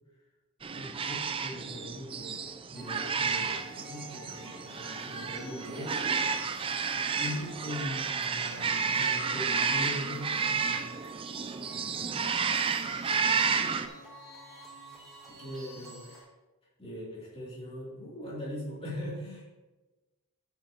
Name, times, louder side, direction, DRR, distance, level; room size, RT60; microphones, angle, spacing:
sound 1, 0.6-13.9, right 5 dB, 25° right, 0.4 m, -31 dB
voice 1, 0.7-6.8 7.2-10.8 15.3-16.3 16.8-19.4, left 1 dB, 25° left, -6 dB, 2.9 m, -41 dB
sound 2, 2.7-16.2, right 2 dB, ahead, 2.9 m, -49 dB
12.5 x 6.8 x 3.0 m, 1.2 s
head